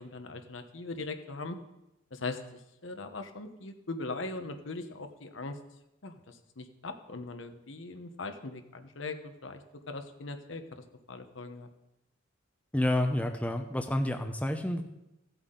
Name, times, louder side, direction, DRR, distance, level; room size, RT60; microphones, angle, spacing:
voice 1, 0.0-1.6 2.1-2.4 2.8-5.6 6.0-9.6 9.9-10.6 11.1-11.7, left 3 dB, 75° left, 7 dB, 1.0 m, -40 dB
voice 2, 12.7-14.8, left 1 dB, 5° left, 5 dB, 0.6 m, -29 dB
15.5 x 8.1 x 3.9 m, 0.91 s
head